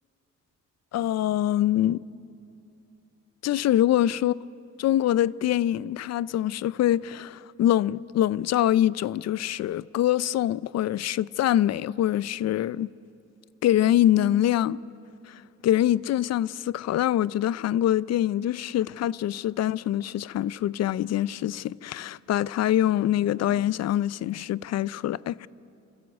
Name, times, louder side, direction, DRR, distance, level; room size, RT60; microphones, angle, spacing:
voice 1, 0.9-2.0 3.4-4.3 4.8-12.9 13.6-14.8 15.3-25.5, left 12 dB, 60° left, 0.5 m, -24 dB
27.5 x 14.0 x 8.3 m
cardioid pair, 90°, 30 cm